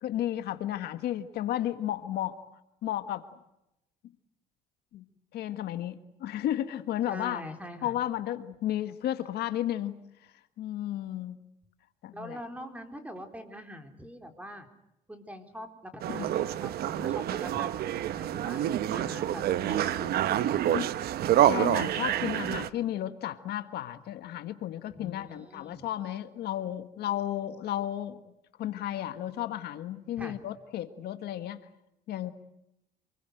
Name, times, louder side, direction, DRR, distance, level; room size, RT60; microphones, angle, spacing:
voice 1, 0.0-2.4 2.8-3.3 4.9-5.1 5.3-7.4 7.8-10.0 10.6-11.4 12.0-12.4 16.1-16.3 20.7-20.9 21.5-28.2 28.6-31.6 32.1-32.3, left 12 dB, 70° left, 9 dB, 1.7 m, -33 dB
voice 2, 7.1-7.9 12.1-14.7 15.1-18.6 18.9-20.8 25.0-25.9 30.2-30.4, equal, 10° right, 6 dB, 4.0 m, -43 dB
sound 1, 16.0-22.7, right 12 dB, 70° right, 1.0 m, -27 dB
28.0 x 21.5 x 8.0 m, 0.87 s
cardioid pair, 110°, 17 cm